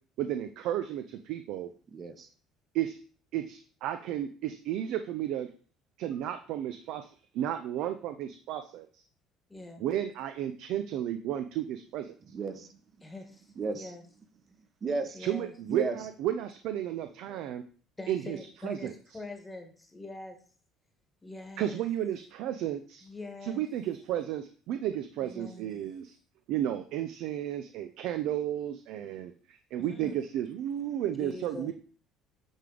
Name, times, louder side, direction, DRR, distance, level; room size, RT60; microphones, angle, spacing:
voice 1, 0.2-1.7 2.7-3.0 3.3-5.5 6.0-9.0 9.8-12.1 15.2-17.6 18.1-18.9 21.6-23.1 23.4-26.1 26.5-31.7, right 11 dB, 70° right, 8 dB, 0.5 m, -33 dB
voice 2, 1.9-2.3 12.3-12.7 13.6-13.9 14.8-15.2 15.7-16.0 31.7-31.8, right 3 dB, 40° right, 8 dB, 1.0 m, -33 dB
voice 3, 9.5-9.9 13.0-13.5 13.8-14.0 15.1-15.5 18.0-20.4 21.2-21.8 23.0-23.6 25.2-25.7 29.9-30.2 31.2-31.7, left 2 dB, 15° left, 5 dB, 1.3 m, -43 dB
8.9 x 3.4 x 3.8 m, 0.43 s
supercardioid pair, 95°, 0 cm